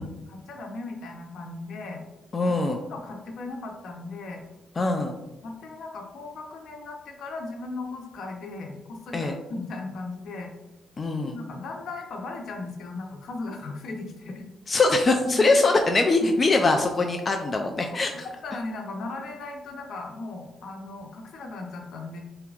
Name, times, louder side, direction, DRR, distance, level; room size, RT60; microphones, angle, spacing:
voice 1, 0.0-2.0 2.9-4.4 5.4-10.5 11.2-14.5 14.7-14.8 15.2-15.5 16.2-16.3 17.9-18.1 18.4-22.2, left 3 dB, 70° left, 2 dB, 0.9 m, -37 dB
voice 2, 2.3-2.8 4.8-5.2 9.1-9.3 11.0-11.4 14.7-18.3, left 3 dB, 35° left, 4 dB, 0.4 m, -22 dB
6.8 x 2.9 x 2.4 m, 1.0 s
cardioid pair, 90°, 0 cm